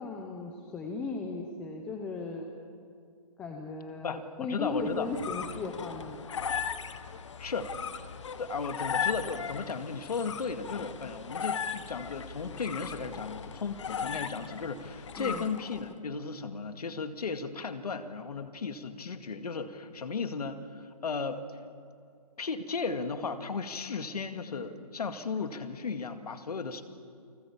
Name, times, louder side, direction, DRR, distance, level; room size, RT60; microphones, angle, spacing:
voice 1, 0.0-2.5 3.4-6.3 15.2-15.4, left 3 dB, 5° left, 2 dB, 0.6 m, -36 dB
voice 2, 4.0-5.1 7.4-7.8 8.4-21.5 22.4-26.8, left 5 dB, 70° left, 8 dB, 2.1 m, -35 dB
sound 1, 4.8-15.9, left 7 dB, 50° left, 1.1 m, -37 dB
29.5 x 20.5 x 7.3 m, 2.3 s
hypercardioid pair, 170°, 20 cm